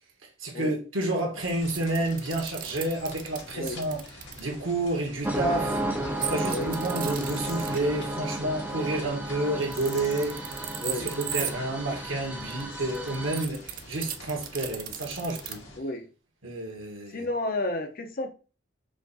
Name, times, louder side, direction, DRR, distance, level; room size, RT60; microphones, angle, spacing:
voice 1, 0.4-4.0 4.4-5.8 6.3-15.6 16.4-17.3, right 2 dB, 85° right, 1.4 m, -30 dB
sound 1, 1.4-15.8, left 2 dB, 75° left, 2.3 m, -47 dB
sound 2, 1.5-4.4 6.2-7.8 9.5-11.5 12.4-15.5, right 10 dB, 45° right, 0.5 m, -36 dB
sound 3, 5.2-13.4, right 1 dB, 10° right, 0.7 m, -33 dB
voice 2, 17.1-18.3, left 2 dB, 45° left, 0.8 m, -31 dB
5.0 x 2.6 x 4.0 m
head